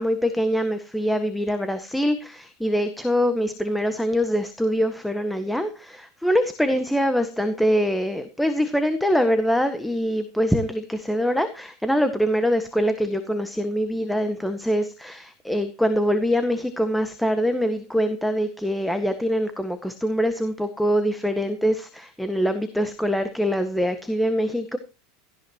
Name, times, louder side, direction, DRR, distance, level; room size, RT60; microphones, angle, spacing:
voice 1, 0.0-24.8, equal, 5° left, 9 dB, 1.6 m, -24 dB
17.0 x 15.5 x 3.0 m, 0.31 s
figure-of-eight pair, 80°, 0 cm